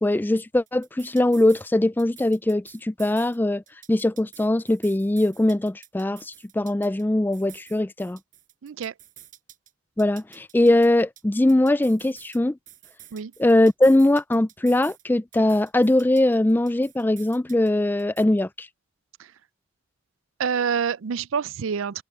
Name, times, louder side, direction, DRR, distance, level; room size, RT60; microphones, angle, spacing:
voice 1, 0.0-3.6 3.9-8.2 10.0-12.6 13.4-18.7, left 1 dB, 10° left, 0.3 m, -21 dB
sound 1, 0.7-1.7 2.0-3.4 3.7-7.0 7.3-9.7 10.0-12.4 12.7-15.0 15.3-17.7 18.0-18.2, right 12 dB, 40° right, 5.2 m, -49 dB
voice 2, 8.6-8.9 13.1-13.3 20.4-22.0, right 7 dB, 70° right, 0.4 m, -27 dB
open air
head